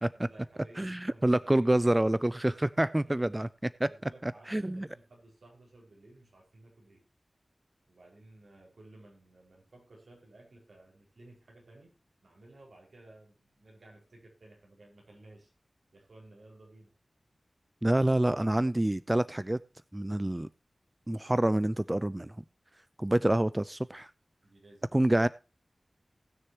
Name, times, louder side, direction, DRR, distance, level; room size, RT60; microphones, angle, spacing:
voice 1, 0.1-1.7 3.0-3.2 3.9-7.0 7.9-11.9 12.2-15.5 15.9-16.9 24.4-24.9, right 2 dB, 80° right, 0 dB, 4.9 m, -56 dB
voice 2, 0.8-3.9 4.2-4.9 17.8-19.6 19.9-20.5 21.1-22.3 23.0-24.1 24.9-25.3, right 1 dB, 20° right, 17 dB, 0.4 m, -27 dB
19.0 x 6.6 x 2.9 m, 0.32 s
wide cardioid pair, 65°, 0 cm